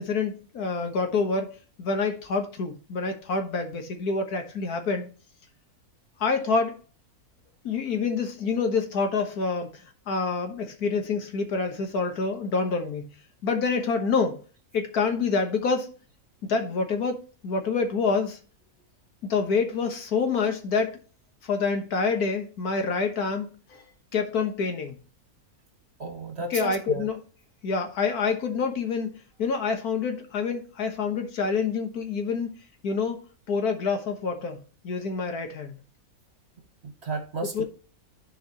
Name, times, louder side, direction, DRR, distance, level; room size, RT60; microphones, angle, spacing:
voice 1, 0.0-5.1 6.2-6.8 7.6-13.1 13.4-14.4 14.7-15.9 16.5-18.4 19.2-20.9 21.4-23.8 24.1-25.0 26.5-27.2 27.6-32.6 32.8-33.2 33.5-35.8 37.5-37.6, left 4 dB, 80° left, 1.8 m, -27 dB
voice 2, 26.0-27.0 36.8-37.6, right 3 dB, 45° right, 1.4 m, -33 dB
13.5 x 4.8 x 3.0 m
omnidirectional pair, 1.6 m